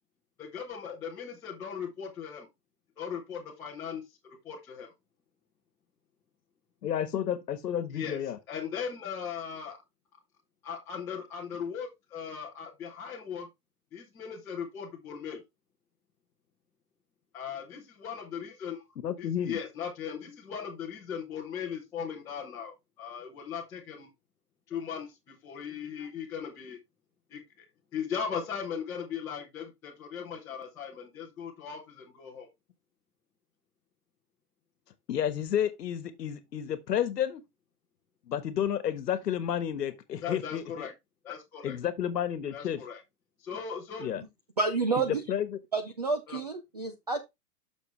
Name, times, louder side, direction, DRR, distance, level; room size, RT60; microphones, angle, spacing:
voice 1, 0.4-2.5 3.0-4.9 7.9-8.2 8.5-9.8 10.6-13.5 13.9-15.4 17.3-18.8 19.2-24.1 24.7-26.8 27.3-27.4 27.9-32.5 40.2-40.9 41.2-41.8 42.5-43.0 43.4-44.1 46.3-46.4, left 7 dB, 5° left, 0.9 m, -38 dB
voice 2, 6.8-8.4 19.0-19.6 35.1-37.4 38.3-40.9 41.6-42.8 44.0-44.2 45.0-45.6, left 9 dB, 90° left, 1.4 m, -31 dB
voice 3, 44.6-45.2 45.7-47.2, right 4 dB, 30° right, 0.4 m, -29 dB
7.5 x 6.5 x 3.1 m
hypercardioid pair, 170°, 47 cm